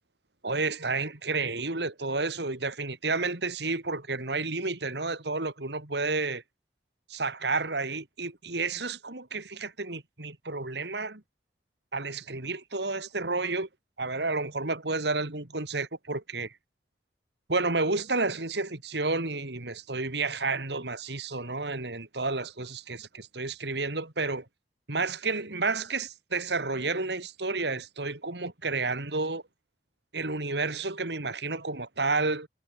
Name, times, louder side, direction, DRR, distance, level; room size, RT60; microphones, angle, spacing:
voice 1, 0.4-6.4 7.1-11.2 11.9-13.7 14.0-16.5 17.5-24.4 24.9-29.4 30.1-32.5, right 3 dB, 70° right, 2.6 m, -31 dB
head